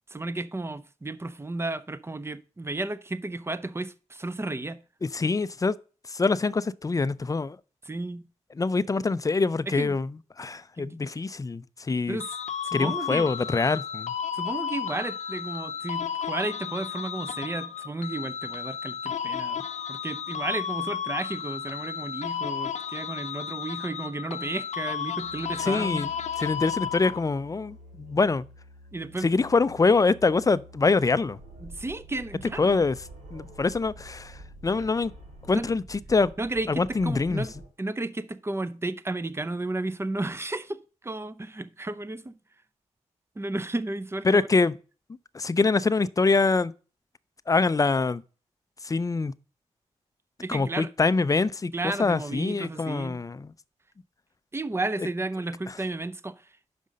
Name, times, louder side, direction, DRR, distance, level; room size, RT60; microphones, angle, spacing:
voice 1, 0.1-4.8 7.8-8.2 9.7-10.0 10.8-11.0 12.1-12.3 12.6-13.3 14.3-19.6 19.9-26.1 28.9-29.3 31.6-32.8 35.5-35.7 36.4-37.5 37.8-40.8 41.0-42.3 43.4-44.6 50.4-50.9 51.7-53.2 54.5-56.3, right 2 dB, 20° right, 0.6 m, -33 dB
voice 2, 5.0-5.7 6.1-7.6 8.6-10.1 10.4-12.2 12.7-14.1 25.6-26.1 26.4-28.4 29.2-31.4 32.6-33.0 33.3-35.1 35.5-36.3 36.7-37.5 44.2-44.8 45.3-46.7 47.5-48.2 48.8-49.3 50.5-53.5, left 4 dB, 25° left, 0.4 m, -24 dB
sound 1, 12.2-27.4, left 8 dB, 70° left, 0.7 m, -33 dB
Musical instrument, 25.2-36.0, equal, 90° right, 1.5 m, -51 dB
sound 2, 31.4-37.7, right 2 dB, 60° right, 4.3 m, -47 dB
5.5 x 5.2 x 6.4 m
cardioid pair, 50°, 13 cm